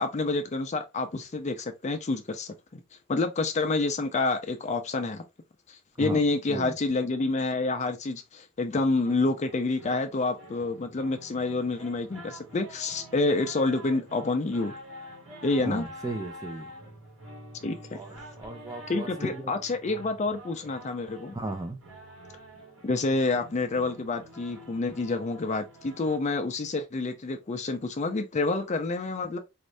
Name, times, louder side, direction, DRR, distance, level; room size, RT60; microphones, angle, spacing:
voice 1, 0.0-2.8 3.1-5.2 5.7-14.7 15.4-15.8 17.6-18.0 18.9-21.3 22.8-29.4, left 3 dB, 35° left, 0.5 m, -28 dB
voice 2, 6.0-6.8 15.6-16.7 17.9-19.5 21.3-21.8, right 2 dB, 15° right, 0.7 m, -36 dB
sound 1, 9.0-26.2, equal, 80° right, 2.0 m, -47 dB
4.2 x 2.6 x 3.2 m
head